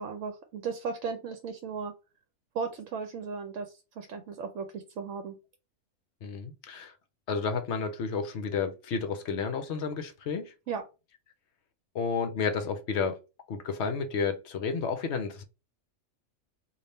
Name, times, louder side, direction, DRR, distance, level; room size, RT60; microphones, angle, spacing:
voice 1, 0.0-1.9 2.5-5.4 10.7-10.8, right 5 dB, 70° right, 0.9 m, -36 dB
voice 2, 6.2-6.9 7.3-10.5 11.9-13.2 13.5-15.4, left 5 dB, 60° left, 0.8 m, -31 dB
3.4 x 2.5 x 4.1 m
omnidirectional pair, 1.5 m